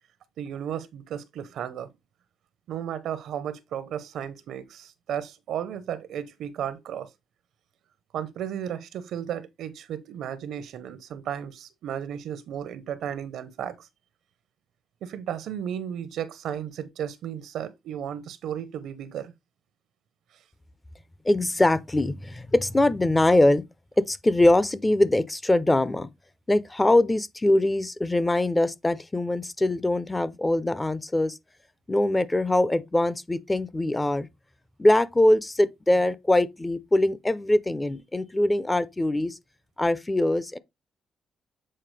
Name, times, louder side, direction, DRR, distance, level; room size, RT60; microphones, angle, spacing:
voice 1, 0.4-1.9 2.7-7.1 8.1-13.9 15.0-19.3, right 9 dB, 80° right, 0.8 m, -34 dB
voice 2, 21.2-23.6 24.0-26.1 26.5-31.4 31.9-34.3 34.8-39.4 39.8-40.6, left 1 dB, 10° left, 0.4 m, -22 dB
7.6 x 4.4 x 3.2 m
cardioid pair, 165°, 0 cm